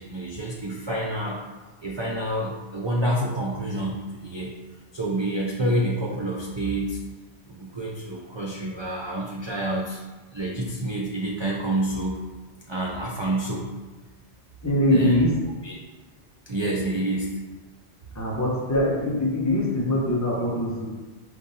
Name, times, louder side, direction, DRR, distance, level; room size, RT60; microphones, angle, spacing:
voice 1, 0.0-1.4 1.8-4.5 4.9-7.0 7.5-10.0 10.3-12.2 12.7-13.7 14.9-15.2 15.6-15.8 16.5-17.4, right 1 dB, 45° right, -2 dB, 0.3 m, -28 dB
voice 2, 14.6-15.3 18.1-20.9, left 1 dB, 15° left, -4 dB, 0.9 m, -22 dB
5.0 x 3.3 x 2.8 m, 1.3 s
omnidirectional pair, 1.1 m